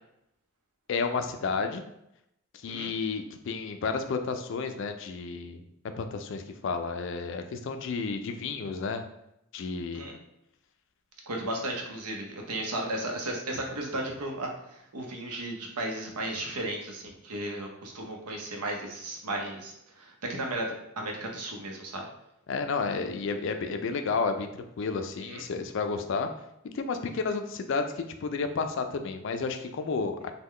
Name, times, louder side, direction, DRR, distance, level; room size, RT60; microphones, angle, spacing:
voice 1, 0.9-1.8 2.6-5.6 6.0-9.0 9.5-10.0 22.5-24.5 24.8-26.3 26.7-30.3, left 4 dB, 55° left, 7 dB, 0.3 m, -31 dB
voice 2, 11.3-22.1 25.2-25.4, right 1 dB, 90° right, 1 dB, 0.7 m, -35 dB
3.7 x 2.2 x 3.1 m, 0.81 s
head